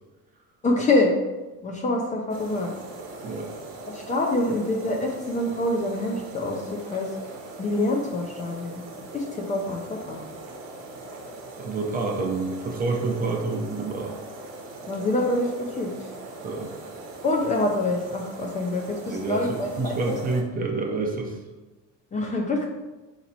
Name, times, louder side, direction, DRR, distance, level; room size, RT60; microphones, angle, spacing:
voice 1, 0.6-1.1 1.6-2.7 3.2-3.3 3.9-7.1 7.6-8.8 9.1-10.2 14.9-16.1 17.2-20.2 22.1-22.7, left 2 dB, 25° left, 0 dB, 0.5 m, -26 dB
sound 1, 2.3-20.4, right 2 dB, 85° right, 0.9 m, -41 dB
voice 2, 11.6-14.1 16.4-16.7 19.1-21.4, right 3 dB, 25° right, 1 dB, 0.6 m, -28 dB
4.1 x 2.9 x 4.0 m, 1.1 s
cardioid pair, 145°, 32 cm